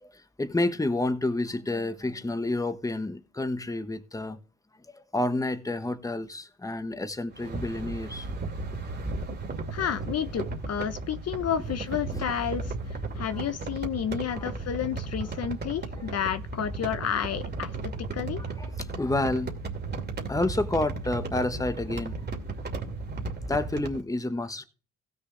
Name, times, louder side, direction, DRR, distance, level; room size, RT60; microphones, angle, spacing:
voice 1, 0.0-4.4 4.9-8.3 12.1-12.4 13.2-13.5 14.2-14.5 18.4-19.5 20.3-22.2 23.5-24.6, left 2 dB, 10° left, 1.2 m, -30 dB
sound 1, 7.3-24.0, right 3 dB, 30° right, 2.4 m, -35 dB
voice 2, 9.7-12.7 13.1-17.7 18.1-18.4, left 8 dB, 50° left, 0.9 m, -30 dB
16.0 x 6.7 x 3.3 m
cardioid pair, 105°, 31 cm